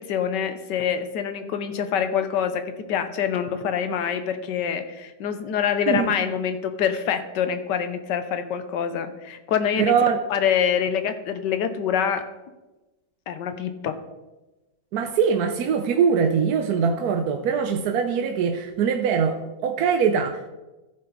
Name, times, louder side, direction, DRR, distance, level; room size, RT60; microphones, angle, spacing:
voice 1, 0.0-2.6 2.9-9.9 10.3-12.2 13.3-14.0, left 8 dB, 85° left, 9 dB, 1.5 m, -25 dB
voice 2, 9.8-10.2 14.9-19.4 19.6-20.5, right 6 dB, 65° right, 5 dB, 1.2 m, -22 dB
14.5 x 5.7 x 3.9 m, 1.1 s
omnidirectional pair, 1.8 m